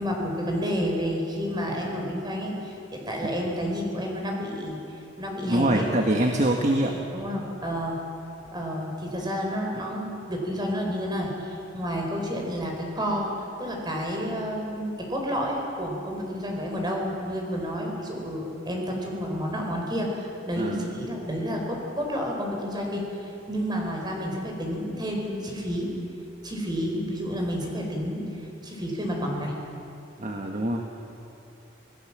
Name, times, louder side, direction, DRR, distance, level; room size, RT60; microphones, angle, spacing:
voice 1, 0.0-4.8 5.2-5.8 7.1-8.0 8.5-13.3 13.6-23.1 23.5-25.9 26.4-28.2 28.6-29.5, equal, 25° right, 0 dB, 4.7 m, -30 dB
voice 2, 5.5-7.0 20.6-20.8 30.2-30.9, right 1 dB, 40° right, 2 dB, 1.5 m, -24 dB
27.0 x 18.0 x 7.5 m, 2.7 s
head